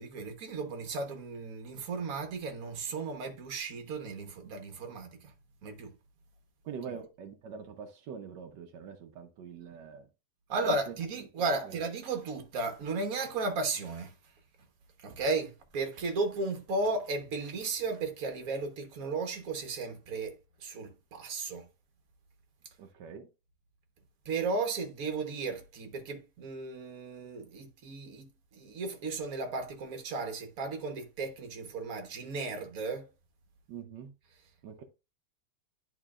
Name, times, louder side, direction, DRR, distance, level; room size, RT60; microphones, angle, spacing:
voice 1, 0.0-5.3 5.6-5.9 6.9-7.0 10.5-14.1 15.0-21.7 24.2-33.1, right 3 dB, 55° right, 1.5 m, -35 dB
voice 2, 6.6-10.1 10.6-10.9 11.5-11.8 22.8-23.3 33.7-34.1 34.6-34.8, right 7 dB, 85° right, 1.4 m, -44 dB
11.0 x 3.8 x 2.4 m
omnidirectional pair, 1.8 m